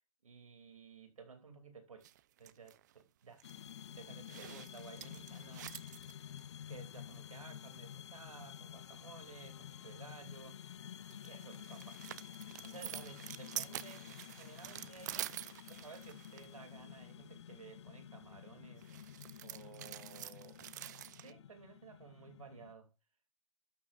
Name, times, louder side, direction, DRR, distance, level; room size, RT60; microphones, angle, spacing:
voice 1, 0.2-2.1 2.4-3.4 3.9-5.7 6.7-10.6 11.1-12.0 12.6-15.2 15.7-18.9 19.4-20.6 21.2-22.9, right 5 dB, 90° right, 2.7 m, -55 dB
sound 1, 2.0-3.0 3.4-3.5 4.3-6.4 10.9-16.6 18.8-21.3, right 13 dB, 35° right, 0.5 m, -47 dB
sound 2, 3.4-22.7, left 10 dB, 55° left, 0.6 m, -51 dB
12.0 x 8.7 x 2.5 m
hypercardioid pair, 155°, 17 cm